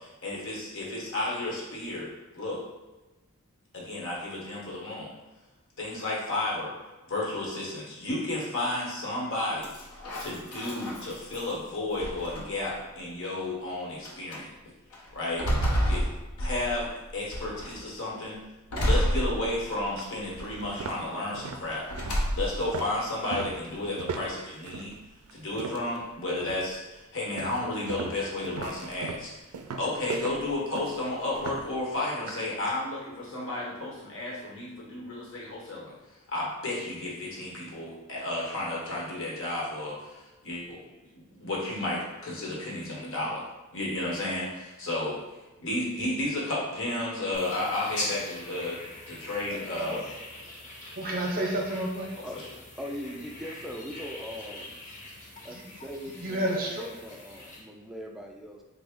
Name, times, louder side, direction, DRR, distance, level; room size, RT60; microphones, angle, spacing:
voice 1, 0.0-2.6 3.7-5.1 5.8-6.7 7.1-9.7 10.2-14.5 15.1-15.5 15.9-16.1 16.4-18.4 18.8-21.9 22.3-25.0 25.3-29.3 29.8-35.9 36.3-40.8 41.4-43.4 43.7-45.2 45.6-48.8 49.1-50.0 52.3-52.5, left 2 dB, 65° left, -4 dB, 1.0 m, -32 dB
sound 1, 9.6-11.5 12.0-12.7 13.5-13.6 14.0-14.4 14.9-16.9 17.3-17.8 18.7-19.9 20.3-20.9 21.9-22.7, equal, 80° left, 0.6 m, -29 dB
sound 2, 19.4-19.5 20.0-20.1 20.5-26.0 26.4-26.8 27.4-31.8, right 5 dB, 90° right, 0.3 m, -38 dB
sound 3, 47.3-57.6, left 1 dB, 35° left, 0.7 m, -42 dB
voice 2, 49.5-50.0 51.0-52.1 55.5-55.6 56.2-56.9, right 1 dB, 45° right, 0 dB, 0.6 m, -30 dB
voice 3, 52.2-54.8 55.4-58.6, equal, ahead, 0 dB, 0.3 m, -41 dB
3.4 x 2.0 x 3.5 m, 1.1 s
head